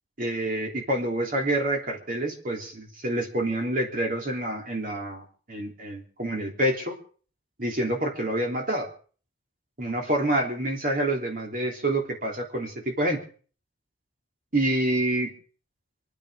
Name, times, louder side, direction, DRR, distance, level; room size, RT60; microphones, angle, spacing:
voice 1, 0.2-6.9 7.6-8.9 9.8-13.2 14.5-15.3, right 1 dB, 45° right, 1 dB, 3.3 m, -27 dB
27.0 x 10.5 x 5.0 m, 0.43 s
head